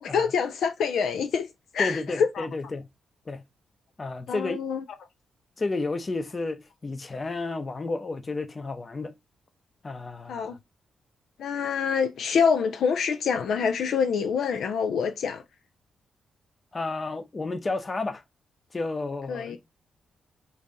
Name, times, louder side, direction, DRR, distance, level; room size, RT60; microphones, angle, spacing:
voice 1, 0.0-1.5 1.7-2.5 4.3-4.8 10.3-10.6 11.4-15.4 19.3-19.6, left 6 dB, 75° left, 0.4 m, -26 dB
voice 2, 1.8-2.9 3.3-3.4 4.0-4.6 5.6-9.1 9.8-10.6 16.7-18.2 18.7-19.6, left 3 dB, 35° left, 0.7 m, -31 dB
2.8 x 2.7 x 3.5 m
cardioid pair, 60°, 0 cm